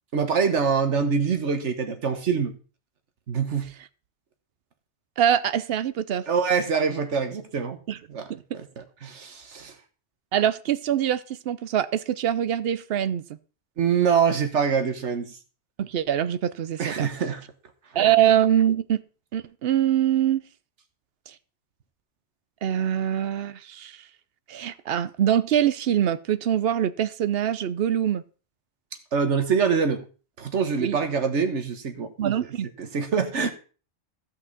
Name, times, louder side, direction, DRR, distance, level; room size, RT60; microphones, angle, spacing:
voice 1, 0.1-2.6 3.3-3.7 6.3-7.8 8.1-8.3 8.5-9.7 13.8-15.3 16.8-17.4 29.1-30.0 30.4-32.1 32.8-33.5, right 6 dB, 90° right, 1.5 m, -24 dB
voice 2, 5.2-6.2 7.9-8.0 8.3-8.4 10.3-13.2 15.8-17.1 18.0-19.0 19.3-20.4 21.3-21.4 22.6-24.0 24.5-28.2 30.8-31.0 32.2-32.7, right 10 dB, 65° right, 0.8 m, -24 dB
15.5 x 5.7 x 4.1 m
omnidirectional pair, 1.2 m